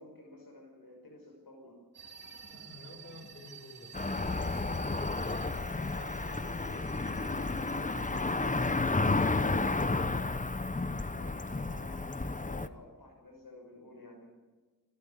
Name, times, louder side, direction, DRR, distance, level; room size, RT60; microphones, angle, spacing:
voice 1, 0.0-1.8 5.7-10.2 10.9-14.3, left 1 dB, 80° left, 1 dB, 6.0 m, -53 dB
sound 1, 1.9-8.8, right 5 dB, 30° right, 3.8 m, -52 dB
voice 2, 2.5-5.0, left 2 dB, 35° left, 1 dB, 6.0 m, -51 dB
Cricket / Motor vehicle (road), 3.9-12.7, left 3 dB, 20° left, 0.8 m, -32 dB
26.5 x 13.0 x 8.7 m, 1.3 s
wide cardioid pair, 75°, 36 cm